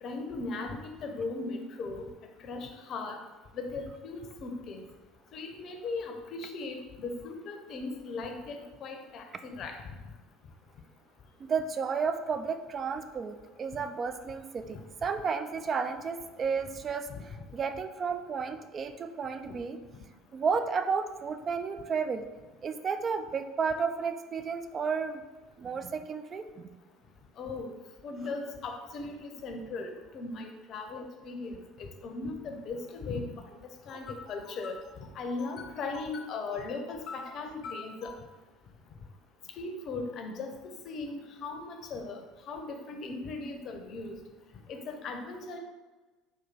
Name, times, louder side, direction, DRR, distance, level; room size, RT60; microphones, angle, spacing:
voice 1, 0.0-2.1 2.4-3.2 3.5-4.8 5.3-9.7 14.7-14.8 17.1-17.4 27.4-27.7 28.0-33.6 33.9-34.8 35.1-38.1 39.6-40.5 40.8-42.2 42.5-44.1 44.7-45.6, left 3 dB, 45° left, 3 dB, 0.6 m, -38 dB
voice 2, 11.4-17.1 17.5-19.8 20.3-22.3 22.6-25.2 25.6-26.7, right 5 dB, 35° right, 9 dB, 0.3 m, -32 dB
4.5 x 2.6 x 3.8 m, 1.3 s
figure-of-eight pair, 65°, 0 cm